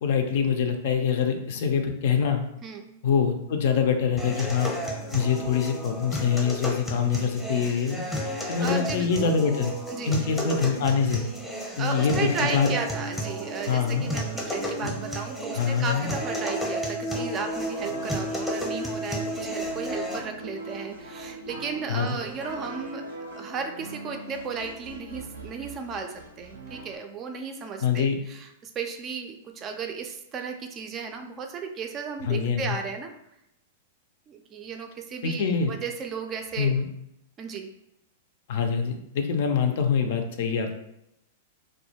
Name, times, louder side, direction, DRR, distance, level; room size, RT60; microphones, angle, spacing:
voice 1, 0.0-2.4 3.0-4.7 5.1-8.0 8.5-9.7 10.0-11.3 11.8-12.7 13.7-14.1 14.8-14.9 15.5-16.1 21.9-22.2 27.8-28.2 32.3-32.8 35.2-35.7 36.6-36.9 38.5-40.7, left 6 dB, 65° left, 5 dB, 0.4 m, -24 dB
sound 1, 4.2-20.2, equal, 5° left, 0.7 m, -32 dB
voice 2, 8.6-9.3 9.9-10.1 11.8-23.1 23.3-33.1 34.3-36.8 37.4-37.7, right 5 dB, 30° right, 5 dB, 0.3 m, -34 dB
sound 2, 17.4-27.0, right 2 dB, 90° right, 0.6 m, -41 dB
2.3 x 2.1 x 2.8 m, 0.82 s
hypercardioid pair, 115°, 0 cm